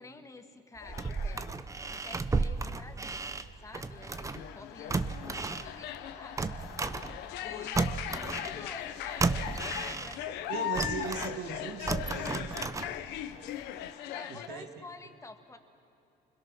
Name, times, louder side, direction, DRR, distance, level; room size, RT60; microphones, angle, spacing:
voice 1, 0.0-1.6 2.0-3.3 3.6-7.2 7.4-10.6 11.5-11.8 14.1-15.6, left 3 dB, 20° left, 6 dB, 1.8 m, -50 dB
sound 1, 0.8-1.5 1.8-2.2 3.5-14.5, left 11 dB, 90° left, 1.0 m, -39 dB
sound 2, 0.8-4.5 4.9-7.5 7.8-10.4 10.8-13.3 13.6-13.7, right 3 dB, 20° right, 0.8 m, -33 dB
voice 2, 10.5-12.8 14.3-14.8, right 6 dB, 80° right, 4 dB, 1.9 m, -39 dB
28.5 x 21.5 x 6.3 m, 2.8 s
cardioid pair, 110°, 17 cm